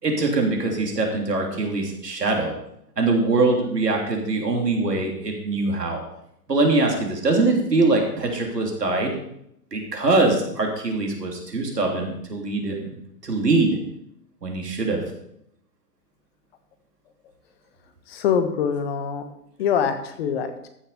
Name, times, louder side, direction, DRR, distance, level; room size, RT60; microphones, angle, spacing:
voice 1, 0.0-2.5 3.0-6.0 6.5-9.1 9.7-12.9 13.2-13.8 14.4-15.0, right 3 dB, 80° right, 1 dB, 3.2 m, -22 dB
voice 2, 18.1-19.3 19.6-20.7, left 7 dB, 40° left, 8 dB, 1.4 m, -24 dB
14.5 x 6.7 x 4.3 m, 0.76 s
figure-of-eight pair, 125°, 48 cm